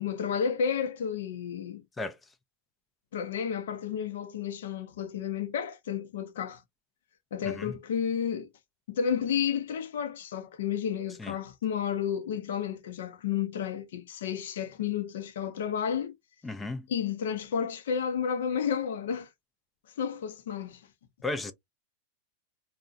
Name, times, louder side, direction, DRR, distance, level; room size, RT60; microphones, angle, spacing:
voice 1, 0.0-1.8 3.1-6.6 7.3-8.5 8.9-16.1 16.9-19.3 20.0-20.8, left 7 dB, 75° left, 0.6 m, -31 dB
voice 2, 16.4-16.9 21.2-21.5, left 2 dB, 15° left, 0.4 m, -34 dB
2.6 x 2.1 x 2.4 m
hypercardioid pair, 105°, 0 cm